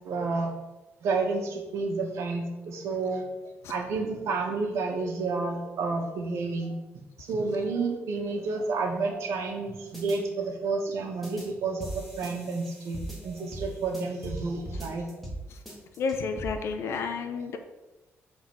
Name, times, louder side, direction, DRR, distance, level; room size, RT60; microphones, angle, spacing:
voice 1, 0.0-0.5 1.0-3.2 3.7-6.7 7.2-15.1 17.3-17.6, right 3 dB, 80° right, 1 dB, 1.6 m, -30 dB
sound 1, 9.9-10.2 11.2-11.5 11.8-14.4 14.7-15.4 15.7-16.5, right 1 dB, ahead, 1.8 m, -39 dB
voice 2, 16.0-17.6, left 5 dB, 65° left, 6 dB, 0.7 m, -30 dB
7.4 x 4.1 x 6.1 m, 1.1 s
cardioid pair, 180°, 5 cm